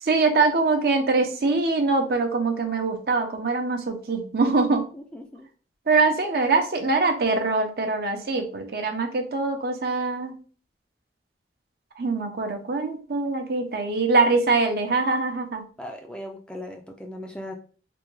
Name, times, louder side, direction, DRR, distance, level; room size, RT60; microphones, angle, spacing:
voice 1, 0.0-4.8 5.9-10.3 12.0-15.6, right 3 dB, 60° right, 4 dB, 0.6 m, -23 dB
voice 2, 4.9-5.5 15.8-17.5, left 1 dB, 5° left, 2 dB, 0.3 m, -38 dB
3.4 x 2.2 x 3.1 m, 0.39 s
head